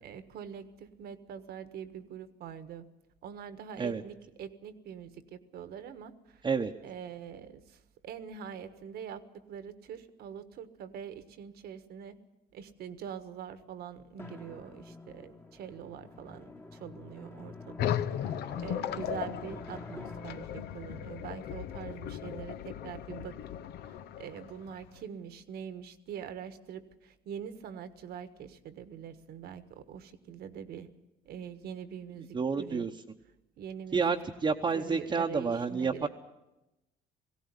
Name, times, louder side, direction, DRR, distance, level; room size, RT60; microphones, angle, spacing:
voice 1, 0.0-2.8 3.2-6.4 6.8-9.2 9.5-12.2 12.5-18.3 18.6-23.4 23.8-30.9 31.2-32.9 33.6-34.2 34.7-36.1, right 8 dB, 70° right, 12 dB, 1.5 m, -44 dB
Drum, 14.2-22.5, left 2 dB, 15° left, 1.3 m, -48 dB
sound 1, 17.8-25.0, left 10 dB, 75° left, 0.9 m, -37 dB
voice 2, 32.3-32.9 33.9-36.1, right 5 dB, 25° right, 2 dB, 1.0 m, -29 dB
18.5 x 16.5 x 9.8 m, 0.96 s
cardioid pair, 110°, 17 cm